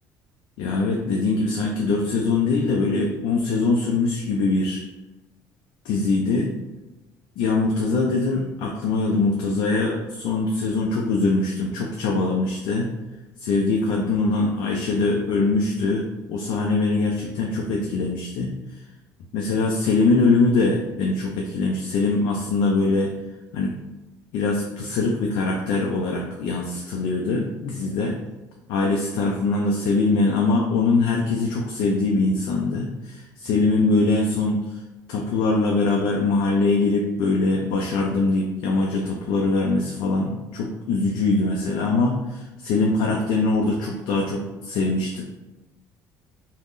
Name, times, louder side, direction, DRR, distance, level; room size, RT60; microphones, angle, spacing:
voice 1, 0.6-4.9 5.8-6.5 7.4-12.9 13.4-18.5 19.3-23.1 23.5-23.7 24.3-28.1 28.7-34.8 35.1-45.3, left 3 dB, 75° left, 0 dB, 0.4 m, -22 dB
3.5 x 2.0 x 2.5 m, 1.1 s
supercardioid pair, 85°, 8 cm